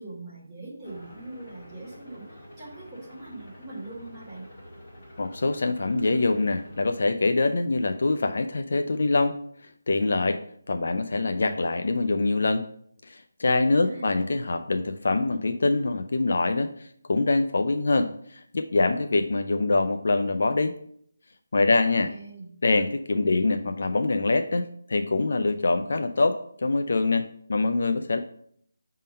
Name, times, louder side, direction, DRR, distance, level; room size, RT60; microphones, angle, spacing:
voice 1, 0.0-4.5 13.8-14.1 22.0-22.5, right 2 dB, 10° right, -10 dB, 1.7 m, -41 dB
sound 1, 0.8-7.0, equal, 25° left, 1.8 m, -48 dB
voice 2, 5.2-9.3 9.9-10.4 10.7-12.6 13.0-20.7 21.5-22.1 22.6-28.2, left 3 dB, 50° left, 8 dB, 0.4 m, -24 dB
5.4 x 3.7 x 5.3 m, 0.65 s
hypercardioid pair, 180°, 0 cm